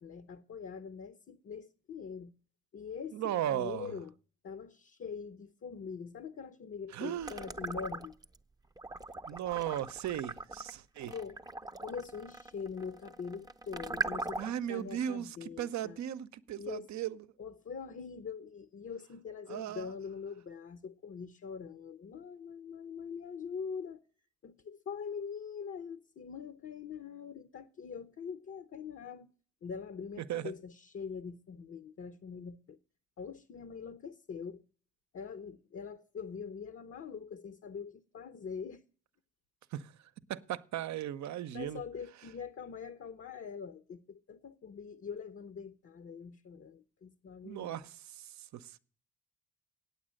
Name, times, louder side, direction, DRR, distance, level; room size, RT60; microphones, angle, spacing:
voice 1, 0.0-2.3 2.7-4.1 4.4-8.2 11.0-11.4 11.8-16.0 16.6-16.9 17.4-24.0 24.4-29.3 29.6-32.8 33.2-34.6 35.1-38.8 41.5-47.8, left 6 dB, 40° left, 0.8 m, -43 dB
voice 2, 3.1-3.9 6.9-7.3 9.3-11.1 14.4-17.3 19.5-19.9 30.2-30.5 39.7-39.9 40.3-41.8 47.4-48.8, right 11 dB, 60° right, 0.7 m, -37 dB
sound 1, 7.2-8.4 8.8-14.7, right 3 dB, 10° right, 0.7 m, -40 dB
8.8 x 8.2 x 6.4 m
supercardioid pair, 65°, 32 cm